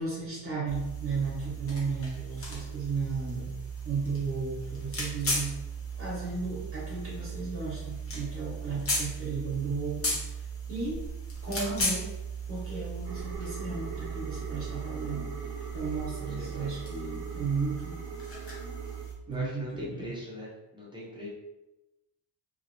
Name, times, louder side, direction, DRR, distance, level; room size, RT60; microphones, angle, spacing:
voice 1, 0.0-3.5 3.8-5.6 5.9-11.1 11.4-12.1 12.5-18.0 19.3-20.1, right 4 dB, 30° right, -7 dB, 1.2 m, -34 dB
sound 1, 0.7-19.1, right 2 dB, 35° left, 0.8 m, -36 dB
sound 2, 13.0-19.0, right 4 dB, 60° right, 0.7 m, -43 dB
voice 2, 16.4-16.8 19.3-21.3, left 2 dB, 10° right, -6 dB, 0.6 m, -41 dB
2.8 x 2.0 x 2.6 m, 0.98 s
wide cardioid pair, 150°, 42 cm